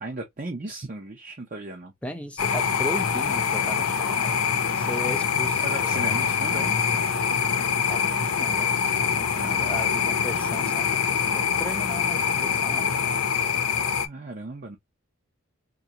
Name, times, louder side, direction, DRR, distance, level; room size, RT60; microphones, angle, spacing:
voice 1, 0.0-1.9 5.6-6.8 9.4-10.1 14.0-14.8, right 2 dB, 40° right, 0.7 m, -36 dB
voice 2, 2.0-4.3 4.8-5.6 6.1-6.2 7.9-8.7 9.1-13.2, left 1 dB, 5° left, 0.7 m, -37 dB
sound 1, 2.4-14.1, left 6 dB, 85° left, 0.7 m, -24 dB
3.8 x 2.8 x 2.9 m
head